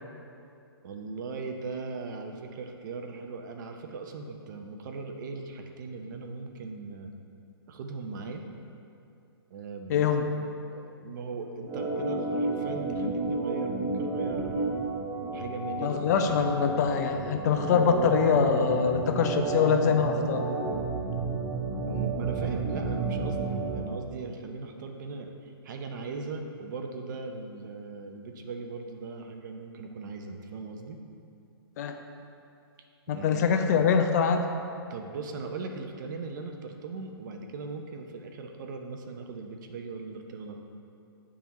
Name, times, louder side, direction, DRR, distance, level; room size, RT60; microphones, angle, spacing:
voice 1, 0.8-7.1 7.7-8.4 9.5-10.1 10.7-14.8 15.3-16.2 21.8-31.0 33.1-33.4 34.9-40.6, right 4 dB, 50° right, 4 dB, 0.6 m, -39 dB
voice 2, 9.9-10.2 15.8-20.5 31.8-32.0 33.1-34.5, left 6 dB, 40° left, 5 dB, 0.4 m, -24 dB
Organ, 11.7-23.8, right 3 dB, 15° right, 0.9 m, -31 dB
9.9 x 3.6 x 3.0 m, 2.6 s
hypercardioid pair, 140°, 13 cm